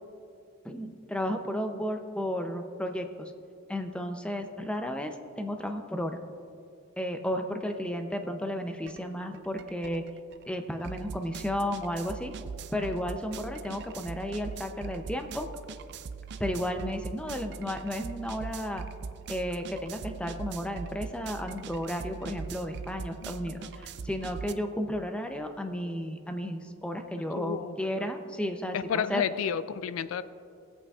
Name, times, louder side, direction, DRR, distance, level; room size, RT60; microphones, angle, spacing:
voice 1, 0.6-3.3 3.7-6.2 7.0-10.0 10.5-12.3 12.7-15.5 16.4-18.8 19.3-29.2, equal, 5° left, 6 dB, 0.5 m, -33 dB
sound 1, 8.9-9.0 9.3-24.5, right 5 dB, 55° right, 0.4 m, -41 dB
voice 2, 23.2-23.9 27.4-28.1 28.7-30.2, left 7 dB, 85° left, 15 dB, 0.3 m, -33 dB
18.0 x 8.2 x 2.4 m, 2.4 s
head